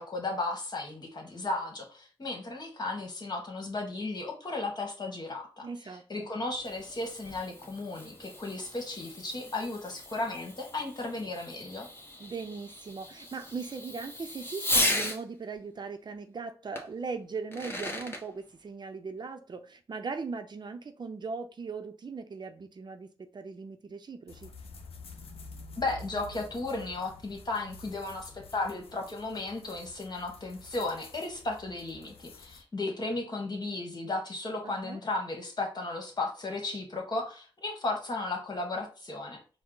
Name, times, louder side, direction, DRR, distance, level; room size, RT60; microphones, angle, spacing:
voice 1, 0.0-5.7 6.1-11.9 25.8-39.4, left 2 dB, 45° left, 2 dB, 1.4 m, -35 dB
voice 2, 5.6-6.3 12.2-24.5 34.6-35.0, right 4 dB, 50° right, 7 dB, 0.5 m, -39 dB
Fireworks, 6.4-15.2 16.8-16.9 17.4-18.2, left 1 dB, 25° left, 1.0 m, -36 dB
sound 1, 24.3-32.6, left 2 dB, 85° left, 0.6 m, -49 dB
4.4 x 2.0 x 3.9 m, 0.37 s
cardioid pair, 55°, 10 cm